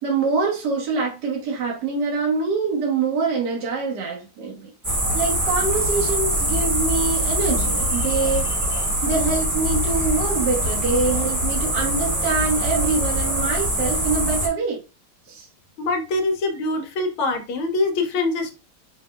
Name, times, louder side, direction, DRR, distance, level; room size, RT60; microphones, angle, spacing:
voice 1, 0.0-4.7 5.1-8.5 9.0-14.8 15.3-15.5, right 4 dB, 55° right, 1.8 m, -24 dB
sound 1, 4.8-14.5, equal, 20° right, 1.0 m, -23 dB
voice 2, 15.8-18.6, left 2 dB, 75° left, 1.5 m, -24 dB
5.4 x 2.6 x 2.3 m
omnidirectional pair, 2.4 m